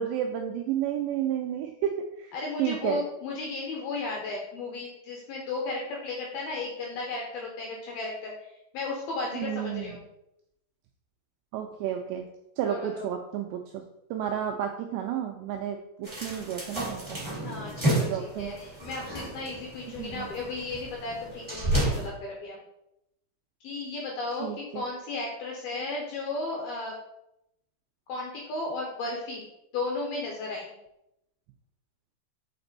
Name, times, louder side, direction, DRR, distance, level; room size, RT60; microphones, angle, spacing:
voice 1, 0.0-3.0 9.3-9.9 11.5-12.3 12.6-13.8 14.1-17.2 17.9-18.5 20.0-20.3 24.4-24.8, right 10 dB, 90° right, 3 dB, 2.5 m, -31 dB
voice 2, 2.3-10.0 12.6-13.0 17.4-22.6 23.6-27.0 28.1-29.5 29.7-30.7, left 3 dB, 75° left, -1 dB, 2.3 m, -34 dB
sound 1, 16.0-22.1, right 1 dB, 10° right, 1.2 m, -31 dB
6.7 x 5.2 x 4.0 m, 0.84 s
omnidirectional pair, 5.6 m